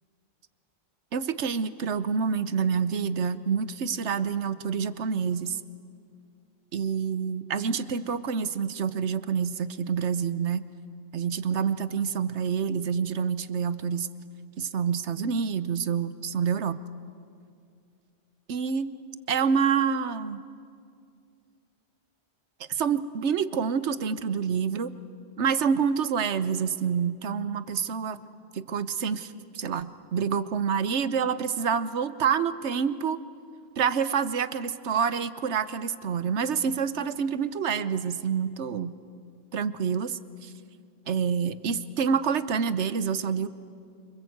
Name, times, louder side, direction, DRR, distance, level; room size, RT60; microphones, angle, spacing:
voice 1, 1.1-5.6 6.7-10.6 11.1-14.1 14.6-16.8 18.5-18.9 19.3-20.4 22.7-24.9 25.4-28.2 28.5-33.2 33.8-38.9 39.5-40.5 41.1-43.5, right 6 dB, 85° right, 13 dB, 1.2 m, -27 dB
28.5 x 26.0 x 8.0 m, 2.4 s
omnidirectional pair, 1.1 m